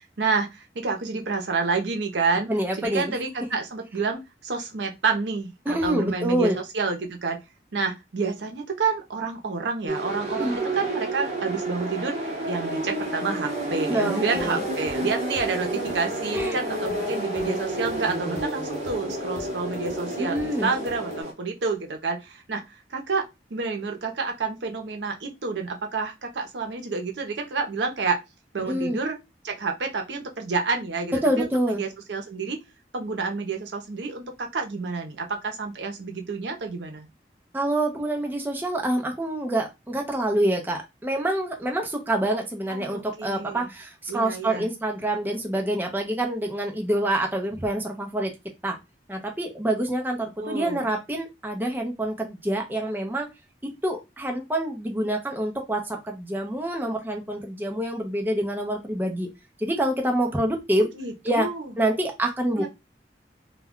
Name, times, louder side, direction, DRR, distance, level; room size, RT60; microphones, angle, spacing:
voice 1, 0.2-2.5 2.7-7.4 7.7-22.6 22.9-28.2 28.5-29.2 29.4-32.6 32.9-37.1 42.7-43.7 44.1-44.7 50.4-50.8 60.8-61.7 62.5-62.7, right 4 dB, 80° right, 0.6 m, -29 dB
voice 2, 2.5-3.1 5.7-6.6 10.3-10.6 13.9-14.6 16.3-16.7 20.2-20.7 28.7-29.0 31.2-31.8 37.5-48.3 48.6-48.8 49.1-53.3 53.6-59.3 59.6-60.9 61.2-61.5 61.8-62.7, right 1 dB, 10° right, 0.5 m, -26 dB
sound 1, 9.9-21.3, right 2 dB, 40° right, 0.9 m, -30 dB
sound 2, 14.4-21.2, left 2 dB, 45° left, 0.5 m, -38 dB
2.2 x 2.2 x 3.5 m
head